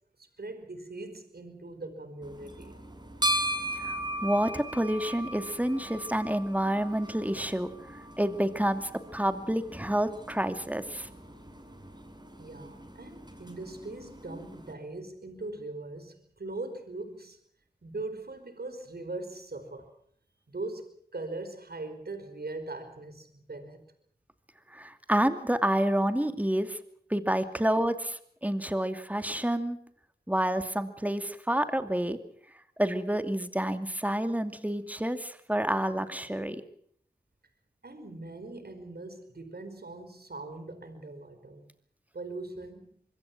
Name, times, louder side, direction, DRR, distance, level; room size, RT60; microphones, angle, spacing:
voice 1, 0.2-2.8 12.4-17.4 17.8-19.9 20.5-23.8 37.8-41.7 42.1-43.0, right 2 dB, 65° right, 8 dB, 4.8 m, -41 dB
sound 1, 2.2-14.7, right 1 dB, 25° right, 7.3 m, -38 dB
voice 2, 3.7-11.1 24.7-26.8 27.1-29.8 30.3-32.2 32.8-36.6, right 1 dB, 10° right, 9 dB, 2.6 m, -29 dB
25.5 x 22.0 x 6.1 m, 0.63 s
cardioid pair, 45°, 17 cm